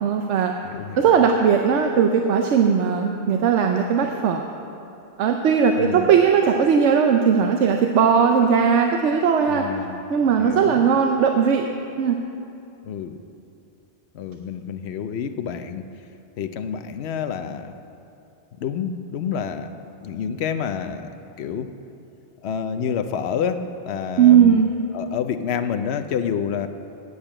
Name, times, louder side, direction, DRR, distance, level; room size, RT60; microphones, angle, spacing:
voice 1, 0.0-0.5 1.0-4.5 5.2-9.7 10.1-11.7 12.0-12.2 24.2-24.7, right 7 dB, 90° right, 4 dB, 1.0 m, -18 dB
voice 2, 0.6-1.0 5.8-6.1 9.5-10.0 10.4-10.9 12.9-13.2 14.1-15.9 16.4-17.7 18.6-19.7 20.0-21.1 21.4-21.7 22.4-24.6 24.9-26.7, left 7 dB, 70° left, 9 dB, 0.9 m, -28 dB
8.7 x 8.1 x 8.8 m, 2.7 s
omnidirectional pair, 1.2 m